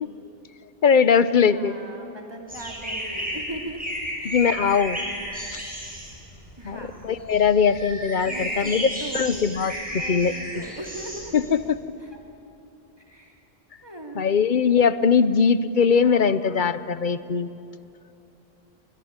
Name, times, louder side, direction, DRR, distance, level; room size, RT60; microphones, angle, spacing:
voice 1, 0.8-1.8 4.2-5.0 5.5-5.6 6.6-8.9 9.1-9.7 10.1-10.3 11.3-11.8 14.2-17.5, left 6 dB, 55° left, 15 dB, 0.9 m, -20 dB
voice 2, 1.5-3.8 4.2-4.4 6.6-7.1 8.2-9.3 9.9-11.4 12.0-12.2 13.1-13.4 13.8-14.4, right 2 dB, 25° right, 1 dB, 3.1 m, -39 dB
sound 1, 2.5-11.7, equal, 10° right, 7.5 m, -33 dB
26.5 x 21.5 x 9.7 m, 3.0 s
omnidirectional pair, 1.1 m